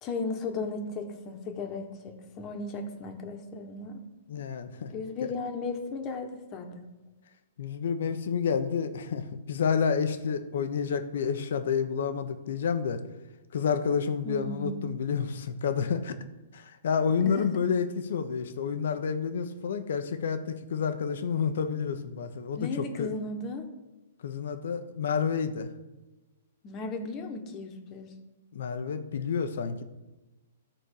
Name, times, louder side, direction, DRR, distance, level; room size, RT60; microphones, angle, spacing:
voice 1, 0.0-4.0 4.9-6.9 14.2-14.8 17.2-17.5 22.6-23.7 26.6-28.1, left 3 dB, 25° left, 4 dB, 1.4 m, -35 dB
voice 2, 4.3-4.9 7.6-13.0 13.5-16.2 16.5-22.7 23.0-23.1 24.2-25.7 28.5-29.8, left 6 dB, 70° left, 9 dB, 1.1 m, -29 dB
13.0 x 4.4 x 6.6 m, 1.1 s
hypercardioid pair, 150°, 0 cm